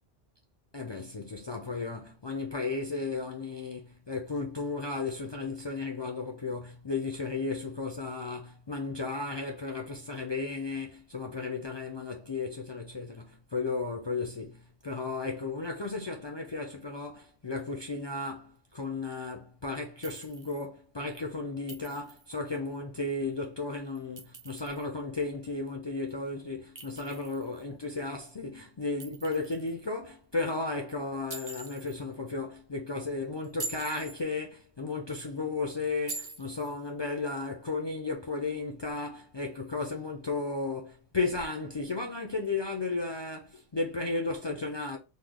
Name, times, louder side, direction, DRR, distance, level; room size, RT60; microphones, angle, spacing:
voice 1, 0.7-45.0, left 3 dB, 45° left, 0.3 m, -34 dB
Chink clink, 20.0-20.7 21.7-22.3 23.9-24.8 26.8-27.6 29.0-29.7 31.3-32.0 33.4-34.2 36.1-36.7, right 2 dB, 30° right, 0.4 m, -43 dB
3.1 x 2.1 x 3.6 m
omnidirectional pair, 1.1 m